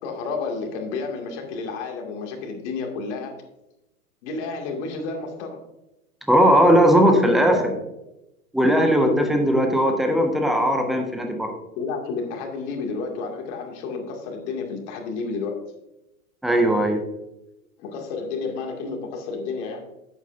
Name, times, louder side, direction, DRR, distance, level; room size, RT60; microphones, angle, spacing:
voice 1, 0.0-3.3 4.2-5.6 6.9-7.8 11.7-15.6 17.8-19.9, left 4 dB, 50° left, 2 dB, 2.4 m, -30 dB
voice 2, 6.3-7.6 8.5-11.5 16.4-17.0, equal, ahead, 4 dB, 0.3 m, -18 dB
11.0 x 8.4 x 2.6 m, 0.91 s
hypercardioid pair, 115°, 43 cm